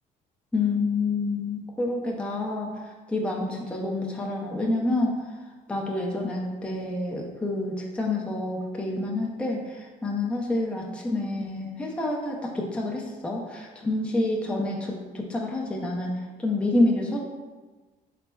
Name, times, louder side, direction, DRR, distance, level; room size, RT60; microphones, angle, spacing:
voice 1, 0.5-2.7 3.1-5.2 5.7-16.1 16.4-17.2, left 2 dB, 5° left, -2 dB, 0.4 m, -28 dB
4.2 x 3.2 x 2.2 m, 1.3 s
cardioid pair, 110°, 17 cm